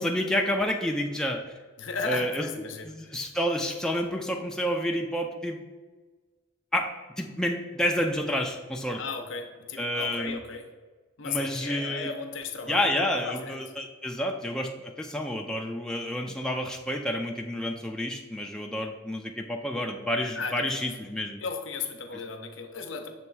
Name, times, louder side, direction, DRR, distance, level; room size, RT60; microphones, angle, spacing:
voice 1, 0.0-1.6 2.1-2.5 2.8-5.6 6.7-9.0 9.8-10.4 11.2-12.1 12.7-21.4, left 1 dB, 5° left, 1 dB, 0.4 m, -29 dB
voice 2, 1.8-3.2 9.0-10.7 11.2-13.6 20.3-20.9 21.4-23.1, left 4 dB, 65° left, 6 dB, 0.7 m, -35 dB
6.8 x 3.1 x 4.6 m, 1.3 s
head